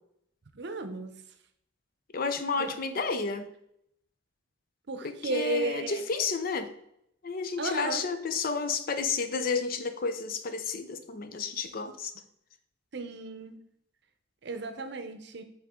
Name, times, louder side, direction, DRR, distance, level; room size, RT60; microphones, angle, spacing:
voice 1, 0.5-1.1 2.6-2.7 4.9-6.0 7.6-8.1 12.9-13.6 14.4-15.4, right 2 dB, 60° right, 8 dB, 0.7 m, -34 dB
voice 2, 2.1-3.5 5.0-6.7 7.2-12.1, left 4 dB, 50° left, 9 dB, 0.6 m, -31 dB
7.7 x 3.7 x 3.7 m, 0.75 s
head